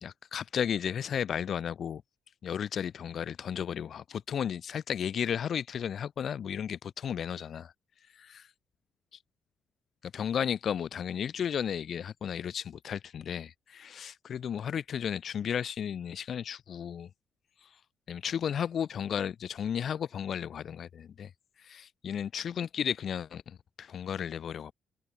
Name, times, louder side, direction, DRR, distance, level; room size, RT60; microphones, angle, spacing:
voice 1, 0.0-2.0 2.4-7.7 8.1-8.4 10.1-17.1 17.6-17.8 18.1-21.3 21.6-24.7, left 8 dB, 45° left, 0.8 m, -34 dB
cardioid pair, 165°, 0 cm